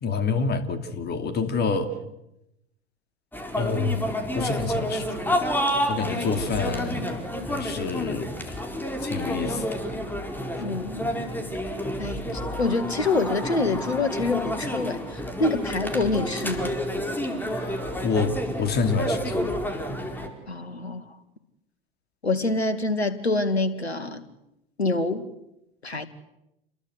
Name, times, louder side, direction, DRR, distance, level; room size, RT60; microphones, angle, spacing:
voice 1, 0.0-1.9 3.5-4.1 4.3-5.5 5.9-7.2 7.5-8.6 9.0-9.6 17.5-19.6, left 4 dB, 30° left, 2.9 m, -28 dB
sound 1, 3.3-20.3, equal, 5° left, 4.6 m, -29 dB
voice 2, 10.6-11.1 12.0-16.8 20.5-21.0 22.2-24.2 24.8-25.2 25.8-26.1, left 3 dB, 85° left, 2.3 m, -26 dB
29.0 x 21.5 x 8.1 m
figure-of-eight pair, 85°, 31 cm